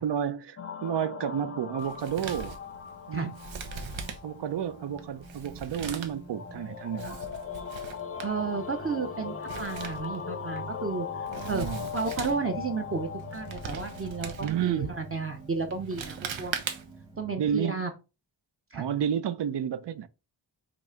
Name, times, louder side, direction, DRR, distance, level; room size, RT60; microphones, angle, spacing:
voice 1, 0.0-2.6 3.1-3.3 4.2-7.3 11.3-11.9 14.4-14.9 17.4-17.8 18.7-20.1, right 9 dB, 65° right, 0.7 m, -31 dB
sound 1, 0.6-15.8, left 7 dB, 30° left, 0.6 m, -40 dB
Male speech man speaking, 1.8-17.1, right 6 dB, 85° right, 1.1 m, -41 dB
sound 2, 3.2-17.5, right 3 dB, 10° right, 1.0 m, -48 dB
voice 2, 8.2-11.7 11.9-16.6 17.2-17.9 18.7-18.8, right 4 dB, 30° right, 0.8 m, -32 dB
6.1 x 3.2 x 5.1 m
wide cardioid pair, 155°, 45 cm